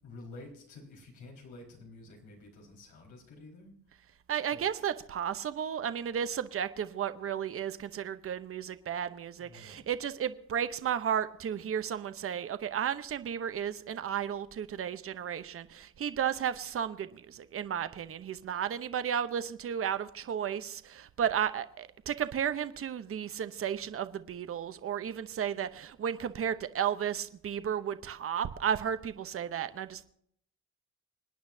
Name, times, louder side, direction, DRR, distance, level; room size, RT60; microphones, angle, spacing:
voice 1, 0.0-3.7 4.5-4.8 9.4-9.9, left 2 dB, 90° left, -1 dB, 4.9 m, -50 dB
voice 2, 4.3-30.1, right 8 dB, 50° right, 11 dB, 0.9 m, -33 dB
26.5 x 9.4 x 2.8 m, 0.65 s
cardioid pair, 90°, 30 cm